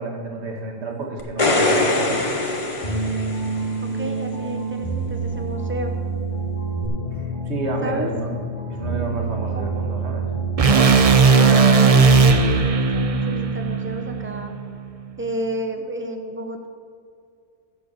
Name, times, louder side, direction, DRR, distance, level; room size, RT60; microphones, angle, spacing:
voice 1, 0.0-2.2 7.1-8.3 8.7-10.3, right 3 dB, 80° right, 1 dB, 1.8 m, -30 dB
sound 1, 1.2-3.8 6.8-6.9, left 2 dB, 30° left, 1.0 m, -22 dB
sound 2, 2.8-10.9, right 3 dB, 50° left, 1.9 m, -27 dB
voice 2, 3.9-5.9 7.8-8.1 9.5-9.6 11.3-14.5 15.2-16.7, right 1 dB, 10° right, 4 dB, 0.8 m, -30 dB
sound 3, 10.6-14.8, right 4 dB, 40° right, 0.6 m, -16 dB
11.5 x 4.7 x 7.8 m, 2.4 s
omnidirectional pair, 1.1 m